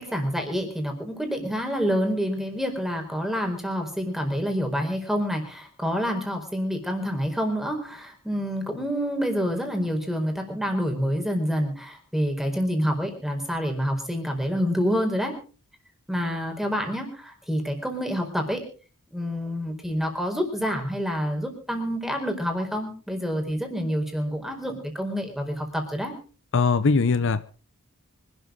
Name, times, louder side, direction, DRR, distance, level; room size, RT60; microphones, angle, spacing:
voice 1, 0.0-15.3 16.1-18.6 19.1-26.1, equal, ahead, 4 dB, 4.6 m, -27 dB
voice 2, 26.5-27.4, left 4 dB, 60° left, 13 dB, 0.8 m, -21 dB
25.0 x 12.5 x 3.9 m, 0.38 s
head